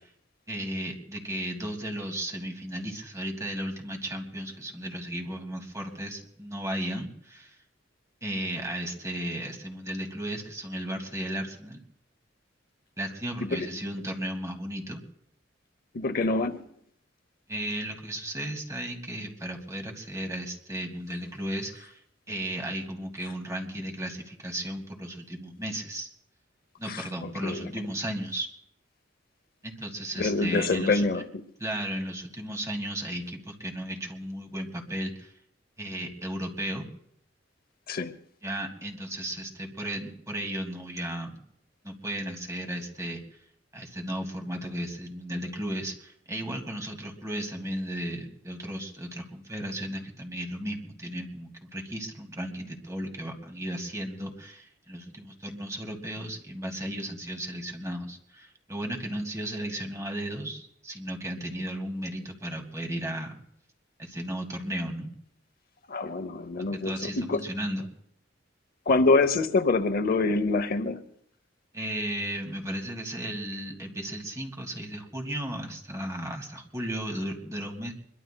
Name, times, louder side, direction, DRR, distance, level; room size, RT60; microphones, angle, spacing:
voice 1, 0.5-7.6 8.2-11.8 13.0-15.0 17.5-22.0 22.3-26.1 26.8-28.5 29.6-31.1 31.6-35.3 35.8-36.9 38.4-41.4 41.8-43.2 43.7-63.4 64.0-65.1 66.8-67.8 71.7-77.9, right 1 dB, 15° right, 2.1 m, -35 dB
voice 2, 15.9-16.6 26.9-27.7 30.2-31.2 37.9-38.1 65.9-67.4 68.9-71.0, left 3 dB, 50° left, 0.7 m, -26 dB
24.5 x 22.5 x 2.2 m
head